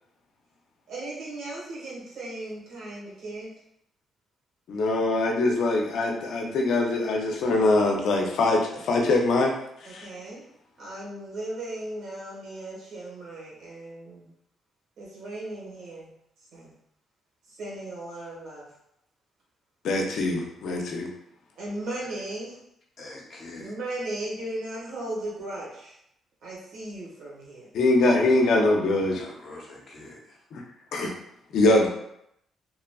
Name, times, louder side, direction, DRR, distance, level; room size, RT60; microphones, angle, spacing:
voice 1, 0.9-3.5 9.8-10.4 10.8-14.3 15.0-16.1 16.5-16.8 17.5-18.7 21.6-22.6 23.6-26.0 26.4-27.7, right 1 dB, 75° right, -6 dB, 1.3 m, -36 dB
voice 2, 4.7-9.5 9.9-10.1 19.8-21.1 27.7-29.2 30.5-30.6 30.9-31.1 31.5-31.9, left 2 dB, 75° left, 1 dB, 0.5 m, -23 dB
voice 3, 23.0-23.7 29.1-30.4, left 2 dB, 45° left, -3 dB, 0.8 m, -44 dB
2.9 x 2.4 x 2.2 m, 0.78 s
cardioid pair, 90°, 0 cm